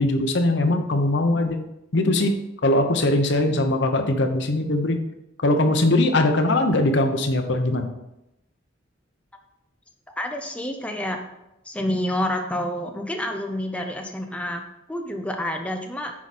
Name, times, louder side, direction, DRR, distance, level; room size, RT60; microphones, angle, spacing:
voice 1, 0.0-1.6 1.9-2.3 2.6-5.0 5.4-7.9, left 2 dB, 65° left, 6 dB, 0.9 m, -21 dB
voice 2, 10.2-11.2 11.7-14.6 14.9-16.1, left 1 dB, 5° left, 3 dB, 0.7 m, -28 dB
9.5 x 4.9 x 4.2 m, 0.88 s
head